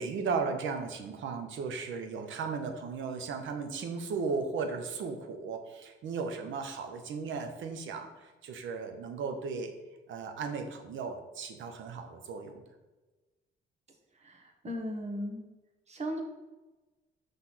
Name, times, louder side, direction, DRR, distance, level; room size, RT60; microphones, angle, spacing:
voice 1, 0.0-9.7 10.1-12.5, right 5 dB, 75° right, 5 dB, 1.1 m, -36 dB
voice 2, 14.2-15.4 15.9-16.2, equal, 35° right, 2 dB, 1.5 m, -37 dB
6.3 x 3.6 x 5.9 m, 1.1 s
cardioid pair, 90°, 20 cm